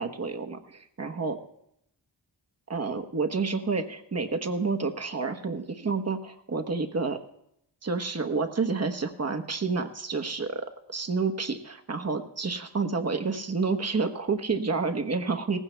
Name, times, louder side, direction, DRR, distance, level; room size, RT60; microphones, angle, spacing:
voice 1, 0.0-1.4 2.7-7.2 7.8-15.6, right 4 dB, 35° right, 6 dB, 1.1 m, -29 dB
19.0 x 15.5 x 2.2 m, 0.77 s
cardioid pair, 60°, 42 cm